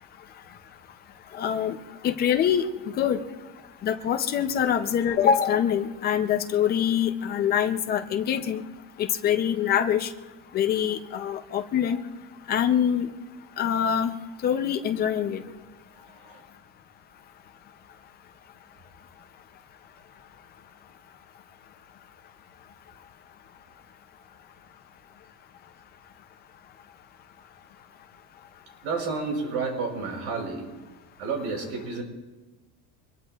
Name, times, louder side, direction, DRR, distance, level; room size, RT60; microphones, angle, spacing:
voice 1, 1.3-1.8 2.0-3.2 3.8-8.6 9.0-10.1 10.5-12.0 12.5-13.1 13.6-14.1 14.4-15.4, left 9 dB, 20° left, 7 dB, 0.4 m, -24 dB
voice 2, 15.9-16.4 28.8-30.7 31.2-32.0, right 4 dB, 80° right, 1 dB, 5.8 m, -31 dB
25.0 x 21.5 x 2.3 m, 1.2 s
cardioid pair, 175°, 49 cm